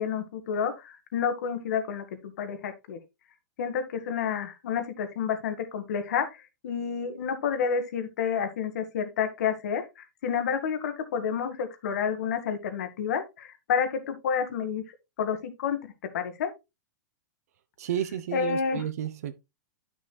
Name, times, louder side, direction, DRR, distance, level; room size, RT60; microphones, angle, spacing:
voice 1, 0.0-3.0 3.6-14.8 15.2-15.8 16.1-16.5 18.3-18.8, left 7 dB, 55° left, 1.8 m, -30 dB
voice 2, 17.8-19.3, right 10 dB, 55° right, 0.9 m, -32 dB
11.5 x 6.3 x 2.2 m
supercardioid pair, 175°, 10 cm